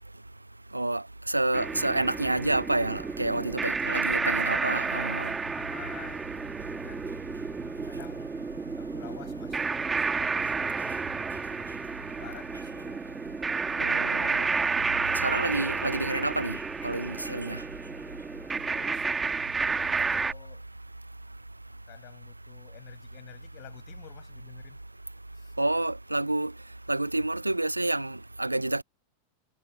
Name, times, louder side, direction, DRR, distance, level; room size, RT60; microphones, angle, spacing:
voice 1, 0.7-5.3 13.8-14.5 15.2-17.6 25.6-26.5 26.9-28.8, right 2 dB, 85° right, 1.0 m, -29 dB
sound 1, 1.5-20.3, right 4 dB, 15° right, 2.2 m, -31 dB
voice 2, 4.1-7.5 7.8-8.3 8.7-11.8 12.1-13.1 18.7-20.6 21.9-24.8 25.3-25.5, left 34 dB, 45° left, 6.6 m, -50 dB
figure-of-eight pair, 90°, 0 cm